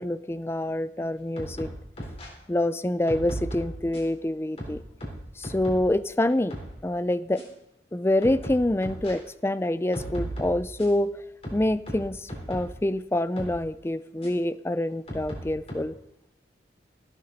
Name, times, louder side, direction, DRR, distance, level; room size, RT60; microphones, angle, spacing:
voice 1, 0.0-1.7 2.5-4.8 5.4-6.5 6.8-7.4 7.9-11.1 11.5-15.9, left 1 dB, 15° left, 0.4 m, -26 dB
sound 1, 1.4-2.3 3.1-4.1 4.6-5.9 6.3-6.7 7.4-7.5 8.2-9.1 9.9-11.0 11.4-12.8 13.4-13.6 14.2-14.3 15.1-15.7, right 1 dB, 35° left, 4.1 m, -36 dB
16.5 x 12.0 x 4.1 m
head